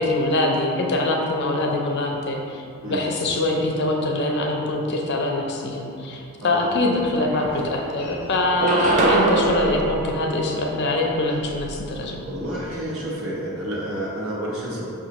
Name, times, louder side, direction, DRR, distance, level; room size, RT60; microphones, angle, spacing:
voice 1, 0.0-2.6 2.9-12.2, left 2 dB, 50° left, 1 dB, 0.5 m, -23 dB
voice 2, 2.8-3.1 6.4-6.7 12.2-14.8, equal, 70° right, -5 dB, 0.9 m, -30 dB
sound 1, 6.8-6.9 7.2-8.0 8.4-11.0, right 3 dB, 35° right, 0.3 m, -24 dB
sound 2, 6.9-12.9, equal, 10° left, 0.7 m, -39 dB
6.0 x 2.3 x 2.9 m, 2.5 s
head